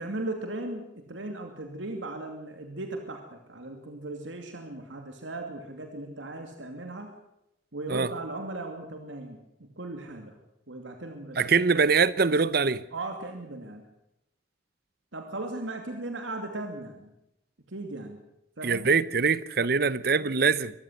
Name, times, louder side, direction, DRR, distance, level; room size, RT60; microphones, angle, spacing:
voice 1, 0.0-7.1 7.7-9.4 9.8-10.3 10.7-11.7 12.9-13.9 15.1-17.1 17.7-18.2 18.6-18.9, right 2 dB, 90° right, 2.6 m, -37 dB
voice 2, 11.4-12.8 18.6-20.7, right 5 dB, 55° right, 0.8 m, -23 dB
24.0 x 14.5 x 8.0 m
head